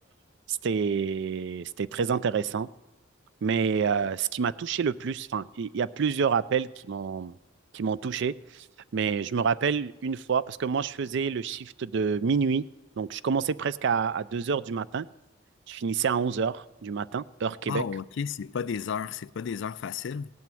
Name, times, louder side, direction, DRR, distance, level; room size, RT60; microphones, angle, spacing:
voice 1, 0.5-2.7 3.4-7.3 7.7-8.7 8.9-12.7 13.0-15.1 15.7-17.8, right 6 dB, 60° right, 0.4 m, -28 dB
voice 2, 17.7-20.3, left 6 dB, 60° left, 0.4 m, -33 dB
17.0 x 9.2 x 7.6 m
head